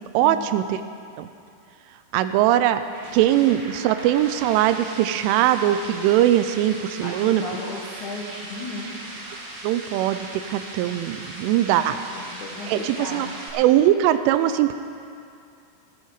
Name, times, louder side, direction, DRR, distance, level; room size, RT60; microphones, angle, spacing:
voice 1, 0.1-0.8 1.2-1.3 2.1-2.8 3.1-7.4 9.6-12.0 12.7-13.3 13.5-14.7, right 12 dB, 85° right, 11 dB, 3.0 m, -21 dB
sound 1, 2.5-13.5, right 2 dB, 70° right, 4.5 m, -38 dB
voice 2, 7.0-8.9 11.9-13.4, left 2 dB, 75° left, -4 dB, 1.8 m, -35 dB
15.5 x 14.0 x 4.8 m, 2.4 s
omnidirectional pair, 5.6 m